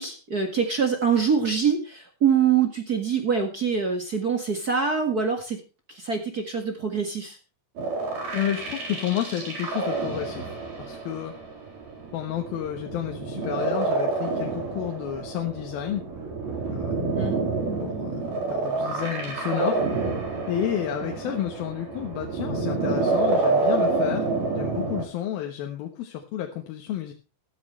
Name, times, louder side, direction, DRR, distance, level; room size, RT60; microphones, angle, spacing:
voice 1, 0.0-5.6 5.9-7.4 17.1-17.4 21.0-21.4, right 6 dB, 40° right, 4 dB, 1.5 m, -25 dB
sound 1, 7.8-25.0, right 3 dB, 90° right, 6.1 m, -28 dB
voice 2, 8.3-11.3 12.1-16.0 16.7-17.0 17.8-19.8 20.5-24.3 24.6-27.1, left 11 dB, 80° left, 3 dB, 3.1 m, -31 dB
14.5 x 13.5 x 3.2 m, 0.32 s
omnidirectional pair, 4.2 m